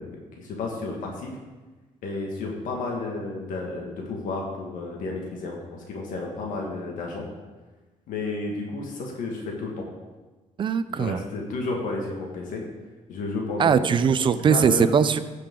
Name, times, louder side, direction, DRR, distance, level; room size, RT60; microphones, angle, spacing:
voice 1, 0.0-1.3 2.0-7.3 8.1-9.9 10.9-12.6 13.1-14.0 14.5-14.9, left 3 dB, 85° left, -1 dB, 1.8 m, -32 dB
voice 2, 10.6-11.2 13.6-15.2, right 7 dB, 40° right, 12 dB, 0.5 m, -20 dB
15.0 x 6.7 x 3.8 m, 1.2 s
cardioid pair, 140°, 13 cm